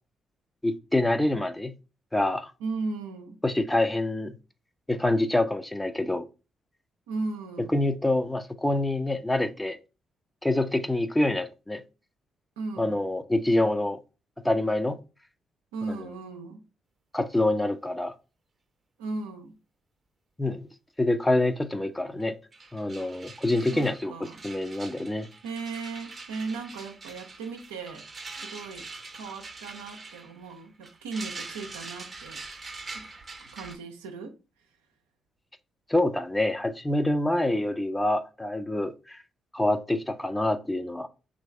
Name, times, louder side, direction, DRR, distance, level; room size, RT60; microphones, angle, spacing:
voice 1, 0.6-1.7 2.1-2.5 3.4-4.4 4.9-6.3 7.7-9.8 10.4-11.8 12.8-14.0 14.4-15.0 15.9-16.0 17.1-18.1 20.4-20.7 21.0-22.4 22.7-25.3 35.9-39.2 39.5-41.1, left 1 dB, 10° left, 0.5 m, -26 dB
voice 2, 2.6-3.4 7.1-7.7 12.6-13.0 15.7-16.6 19.0-19.6 23.7-24.4 25.4-28.1 28.3-32.4 32.9-33.1 33.4-34.4, right 3 dB, 80° right, 0.5 m, -36 dB
sound 1, 22.2-22.3 22.5-33.7, right 3 dB, 40° right, 0.7 m, -43 dB
3.1 x 2.6 x 4.4 m
figure-of-eight pair, 40°, 0 cm